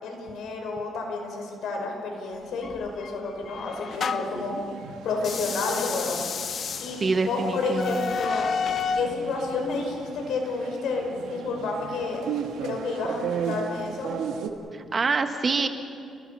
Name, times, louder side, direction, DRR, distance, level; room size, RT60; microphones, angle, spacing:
voice 1, 0.0-4.6 5.0-6.2 6.8-7.0 7.3-8.5 8.9-12.2 12.6-14.1, left 3 dB, 75° left, 2 dB, 5.3 m, -30 dB
sound 1, 2.6-4.5 5.2-9.1, left 6 dB, 55° left, 1.0 m, -31 dB
sound 2, 3.9-14.5, right 7 dB, 85° right, 1.8 m, -37 dB
voice 2, 7.0-8.1 14.7-15.7, right 4 dB, 40° right, 6 dB, 1.7 m, -26 dB
29.5 x 19.5 x 5.8 m, 2.4 s
cardioid pair, 90°, 0 cm